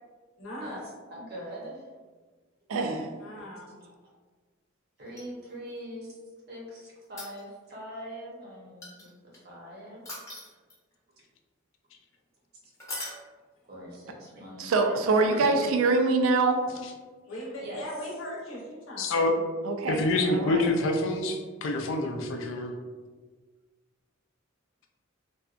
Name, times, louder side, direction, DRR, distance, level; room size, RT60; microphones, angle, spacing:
voice 1, 0.4-0.8 3.2-3.8 17.3-19.1, equal, 90° left, -4 dB, 0.8 m, -39 dB
voice 2, 1.1-1.9 5.0-6.2 6.5-10.2 13.7-15.7 17.6-17.8 20.2-21.0, equal, 50° right, -4 dB, 0.7 m, -42 dB
voice 3, 2.7-3.1 14.6-16.7 19.7-20.0 20.3-20.7, right 3 dB, 85° right, 5 dB, 0.3 m, -24 dB
sound 1, 5.1-5.8 7.0-7.8 8.8-9.4 10.1-11.0 12.8-13.2 15.5-15.6, left 1 dB, 15° left, 0.7 m, -40 dB
voice 4, 19.0-19.3 19.9-22.7, left 2 dB, 70° left, 3 dB, 0.4 m, -27 dB
2.7 x 2.1 x 2.4 m, 1.4 s
head